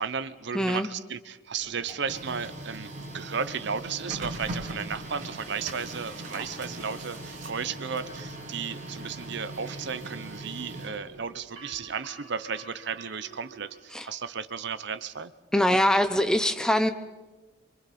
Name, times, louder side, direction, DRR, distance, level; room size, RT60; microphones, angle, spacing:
voice 1, 0.0-15.3 15.7-15.8, right 6 dB, 60° right, 14 dB, 0.8 m, -34 dB
voice 2, 0.5-0.9 13.9-14.1 15.5-16.9, left 1 dB, 5° left, 9 dB, 0.8 m, -23 dB
Printer, 1.6-11.4, right 1 dB, 40° right, 3.2 m, -40 dB
sound 1, 3.9-9.6, left 2 dB, 70° left, 7.0 m, -55 dB
sound 2, 8.7-13.8, right 6 dB, 75° right, 4.0 m, -50 dB
28.0 x 25.0 x 4.3 m, 1.2 s
head